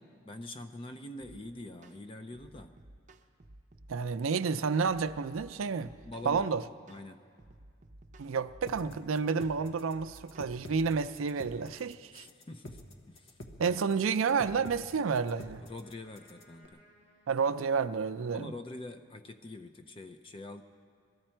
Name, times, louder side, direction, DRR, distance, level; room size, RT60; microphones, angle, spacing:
voice 1, 0.2-2.8 5.8-6.5 6.9-7.2 12.1-12.8 13.1-13.4 13.7-14.0 15.6-16.8 18.3-20.6, left 2 dB, 25° left, 0.4 m, -45 dB
sound 1, 1.2-1.4 1.8-2.0 2.3-3.9 4.3-4.5 4.9-6.5 6.9-7.1 7.4-9.0 9.4-9.6 9.9-11.2, right 1 dB, 35° right, 0.6 m, -55 dB
voice 2, 3.9-5.9 6.3-6.6 8.2-12.3 13.6-15.6 17.3-18.5, right 5 dB, 90° right, 0.4 m, -30 dB
sound 2, 8.7-16.6, left 1 dB, 70° left, 1.1 m, -48 dB
Wind instrument woodwind instrument, 14.0-18.2, equal, 45° left, 5.7 m, -65 dB
22.0 x 14.0 x 4.4 m
head